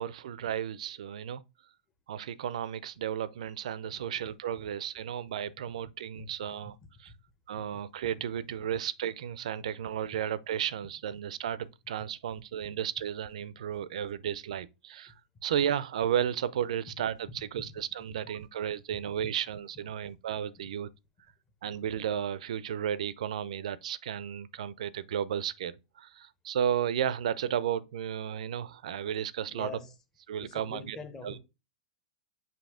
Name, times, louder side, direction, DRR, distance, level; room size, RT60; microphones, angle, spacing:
voice 1, 0.0-1.4 2.1-6.7 7.0-7.1 7.5-15.1 15.4-20.9 21.6-29.7 30.3-31.0 31.2-31.3, right 9 dB, 75° right, 0.5 m, -33 dB
voice 2, 29.5-29.9 30.4-31.4, left 4 dB, 15° left, 1.0 m, -44 dB
7.7 x 2.8 x 4.9 m
supercardioid pair, 165°, 4 cm